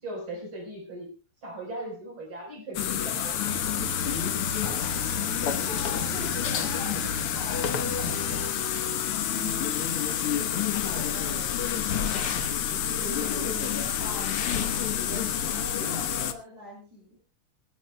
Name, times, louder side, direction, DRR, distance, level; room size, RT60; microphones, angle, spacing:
voice 1, 0.0-1.1 1.4-4.8 9.2-9.7 13.2-13.8, equal, 65° right, 1 dB, 5.1 m, -40 dB
sound 1, 2.7-16.3, left 9 dB, 90° left, 2.2 m, -28 dB
sound 2, 3.4-8.5, left 2 dB, 40° left, 1.5 m, -37 dB
voice 2, 5.6-9.0 9.3-12.4 12.7-17.2, equal, 45° right, -2 dB, 6.4 m, -43 dB
sound 3, 10.7-15.7, left 6 dB, 55° left, 2.0 m, -38 dB
27.5 x 12.0 x 2.2 m, 0.33 s
omnidirectional pair, 2.4 m